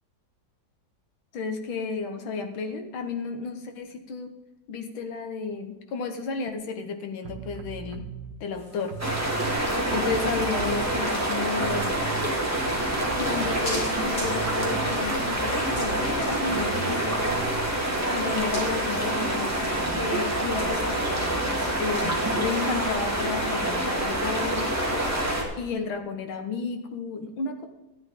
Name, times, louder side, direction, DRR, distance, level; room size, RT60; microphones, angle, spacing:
voice 1, 1.3-4.3 4.7-8.1 8.4-9.2 9.9-12.1 13.1-17.3 18.1-24.7 25.6-27.7, left 4 dB, 80° left, 6 dB, 2.0 m, -32 dB
sound 1, 7.2-8.4 8.8-11.3 11.5-17.9, right 8 dB, 65° right, 1.4 m, -39 dB
sound 2, 8.5-22.9, left 1 dB, 65° left, 5.2 m, -44 dB
sound 3, 9.0-25.4, right 1 dB, 10° right, 2.0 m, -27 dB
13.0 x 10.5 x 3.8 m, 1.1 s
omnidirectional pair, 2.2 m